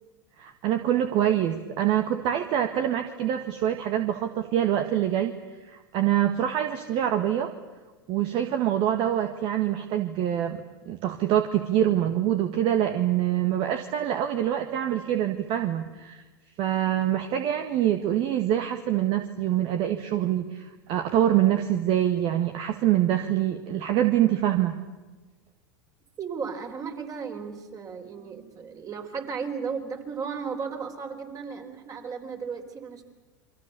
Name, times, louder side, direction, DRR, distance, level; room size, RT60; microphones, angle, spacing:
voice 1, 0.4-5.3 5.6-7.5 8.1-16.2 16.6-24.8, right 11 dB, 50° right, 7 dB, 1.6 m, -25 dB
voice 2, 26.2-33.1, right 5 dB, 30° right, 5 dB, 4.3 m, -35 dB
29.0 x 24.0 x 6.9 m, 1.3 s
hypercardioid pair, 90°, 12 cm